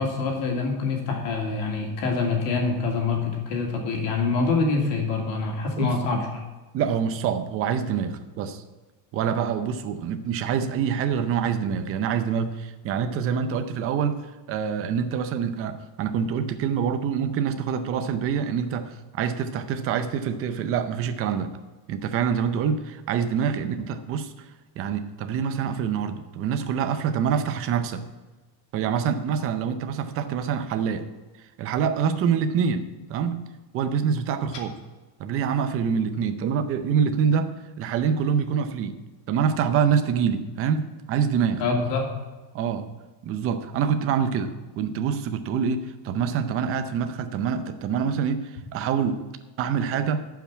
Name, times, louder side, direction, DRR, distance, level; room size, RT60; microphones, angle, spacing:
voice 1, 0.0-6.3 41.6-42.1, left 4 dB, 65° left, 1 dB, 2.8 m, -25 dB
voice 2, 5.8-6.2 6.7-8.6 9.1-14.2 14.5-21.5 21.9-24.3 24.8-28.0 28.7-31.1 31.6-33.5 33.7-34.8 35.2-39.0 39.3-41.6 42.5-42.9 43.2-49.2 49.6-50.2, right 7 dB, 30° right, 9 dB, 0.6 m, -26 dB
10.5 x 5.8 x 8.4 m, 1.2 s
cardioid pair, 160°, 49 cm